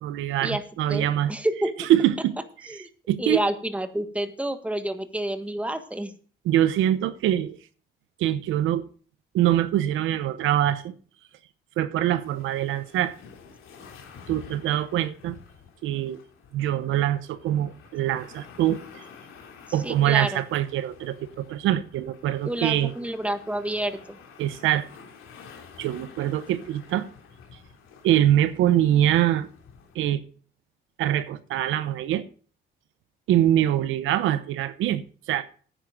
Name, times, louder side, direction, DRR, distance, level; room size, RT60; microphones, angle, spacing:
voice 1, 0.0-1.3 1.8-2.3 3.1-3.4 6.4-7.6 8.2-8.8 9.3-10.9 11.8-13.1 14.3-15.4 15.8-16.2 16.5-19.0 19.7-22.9 24.4-24.9 25.8-27.1 28.0-29.5 29.9-30.2 31.0-32.2 33.3-35.0 35.3-35.4, right 12 dB, 90° right, 0.9 m, -24 dB
voice 2, 0.9-1.7 2.7-2.9 3.2-6.1 19.8-20.3 22.5-24.2, right 1 dB, 5° right, 1.6 m, -29 dB
sound 1, 12.2-30.0, left 6 dB, 85° left, 3.1 m, -49 dB
10.0 x 9.4 x 5.1 m
cardioid pair, 90°, 20 cm